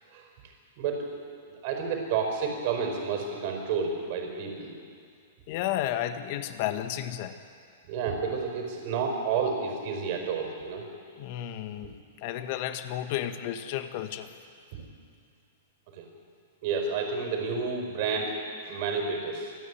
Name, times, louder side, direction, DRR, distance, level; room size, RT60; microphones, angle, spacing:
voice 1, 0.8-1.2 1.6-4.7 7.9-10.8 14.7-14.8 16.0-16.1 16.6-18.4 18.6-19.5, right 5 dB, 50° right, 3 dB, 4.8 m, -30 dB
voice 2, 5.5-7.4 11.2-14.3, left 12 dB, 50° left, 9 dB, 1.4 m, -32 dB
27.5 x 9.8 x 9.8 m, 2.3 s
figure-of-eight pair, 105°, 0 cm